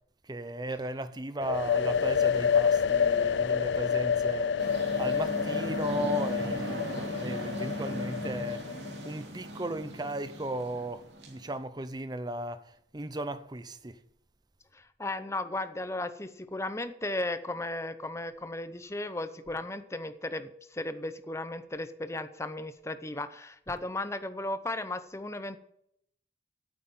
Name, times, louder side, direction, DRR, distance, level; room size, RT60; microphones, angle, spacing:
voice 1, 0.3-4.5 5.0-8.6 9.0-14.0, right 1 dB, 25° right, 0.7 m, -36 dB
sound 1, 1.4-9.1, left 7 dB, 80° left, 0.4 m, -28 dB
sound 2, 4.6-11.5, equal, 80° right, 2.8 m, -37 dB
voice 2, 14.7-25.6, left 2 dB, 15° left, 0.8 m, -35 dB
9.2 x 8.5 x 7.9 m
head